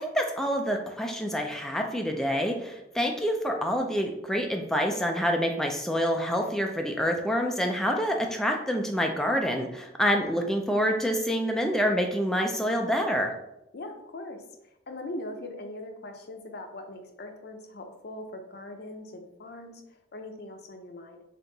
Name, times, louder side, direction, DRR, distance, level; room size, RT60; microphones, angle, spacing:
voice 1, 0.0-13.4, equal, 5° left, 2 dB, 0.3 m, -27 dB
voice 2, 13.7-21.2, left 1 dB, 60° left, 5 dB, 0.6 m, -41 dB
3.6 x 2.8 x 3.9 m, 0.85 s
head